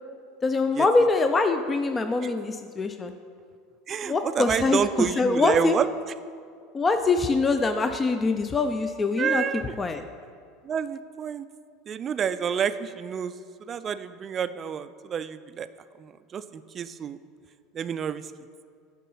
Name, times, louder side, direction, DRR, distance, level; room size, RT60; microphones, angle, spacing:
voice 1, 0.4-3.1 4.0-5.8 6.7-10.0, left 3 dB, 25° left, 7 dB, 0.4 m, -24 dB
voice 2, 3.9-5.9 9.2-9.7 10.6-11.5 11.9-15.7 16.0-17.2 17.7-18.3, right 7 dB, 35° right, 13 dB, 0.4 m, -29 dB
9.1 x 3.7 x 5.6 m, 2.2 s
hypercardioid pair, 90°, 0 cm